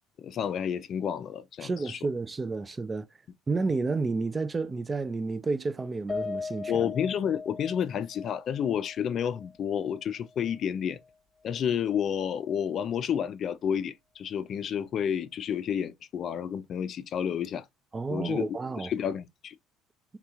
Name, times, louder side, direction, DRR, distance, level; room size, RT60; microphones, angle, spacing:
voice 1, 0.2-2.0 6.7-11.0 11.4-17.6 18.1-18.5 18.8-19.5, left 8 dB, 50° left, 0.4 m, -30 dB
voice 2, 1.6-3.1 3.5-6.8 17.9-18.9, right 3 dB, 25° right, 0.4 m, -31 dB
Piano, 6.1-10.6 10.9-11.1 11.5-11.6, left 4 dB, 20° left, 0.9 m, -39 dB
3.5 x 2.9 x 2.4 m
supercardioid pair, 85°, 0 cm